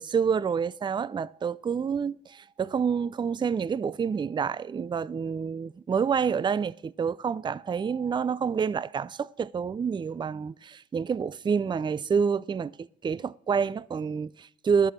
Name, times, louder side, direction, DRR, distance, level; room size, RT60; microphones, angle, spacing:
voice 1, 0.0-14.9, right 6 dB, 25° right, 0.4 m, -28 dB
12.0 x 6.9 x 6.1 m
cardioid pair, 90°, 20 cm